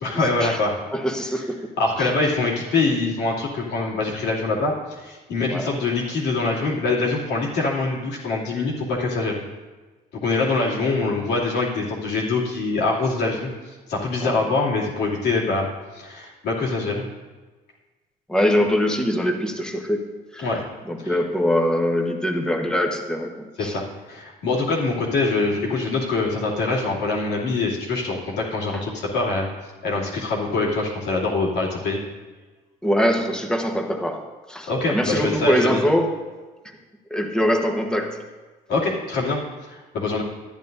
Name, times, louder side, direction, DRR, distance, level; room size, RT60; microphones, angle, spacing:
voice 1, 0.0-0.7 1.8-9.4 10.2-15.7 15.9-17.0 20.4-20.6 21.0-21.2 23.6-23.8 24.1-29.5 29.8-32.0 34.7-35.8 38.7-40.2, left 3 dB, 80° left, -5 dB, 2.7 m, -24 dB
voice 2, 0.9-1.6 2.0-2.1 5.5-5.7 14.2-14.4 18.3-20.5 20.8-23.8 28.7-28.8 32.8-36.2 37.1-38.2, equal, 5° left, 2 dB, 1.2 m, -23 dB
13.0 x 10.5 x 2.7 m, 1.3 s
cardioid pair, 110°, 17 cm